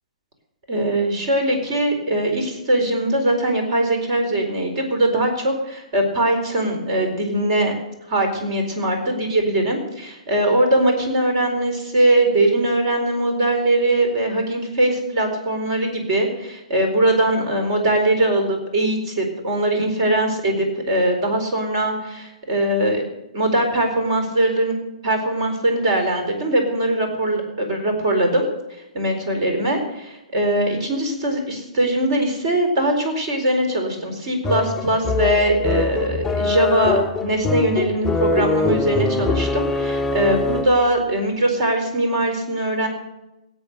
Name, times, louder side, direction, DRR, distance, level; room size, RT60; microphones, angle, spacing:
voice 1, 0.7-7.7 8.1-23.0 23.3-24.7 25.0-28.5 28.9-42.9, right 1 dB, 50° right, 4 dB, 4.3 m, -21 dB
sound 1, 34.4-40.9, left 3 dB, 10° left, 0.5 m, -23 dB
17.5 x 8.2 x 6.7 m, 0.93 s
figure-of-eight pair, 125°, 4 cm